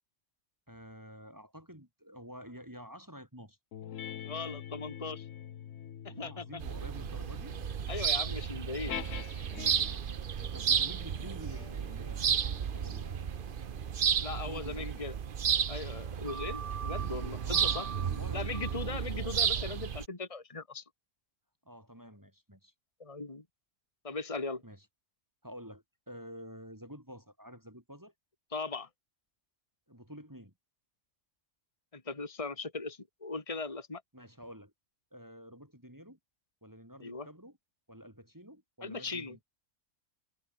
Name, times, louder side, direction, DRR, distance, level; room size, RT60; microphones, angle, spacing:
voice 1, 0.7-3.6 6.1-7.6 9.7-13.3 14.5-15.0 17.4-19.3 21.6-22.7 24.6-24.8 25.4-28.1 29.9-30.5 34.1-34.7 35.1-36.2 36.6-37.6 37.9-39.4, equal, 15° right, 4.5 m, -49 dB
sound 1, 3.7-10.1 10.9-15.8, left 10 dB, 75° left, 1.2 m, -47 dB
voice 2, 4.2-5.3 6.0-6.6 7.9-8.9 14.2-15.1 15.7-17.9 18.3-20.8 23.0-23.4 24.0-24.6 28.5-28.9 31.9-34.0 37.0-37.3 38.8-39.4, left 3 dB, 25° left, 2.2 m, -39 dB
sound 2, 6.6-20.1, right 8 dB, 50° right, 0.9 m, -33 dB
omnidirectional pair, 1.3 m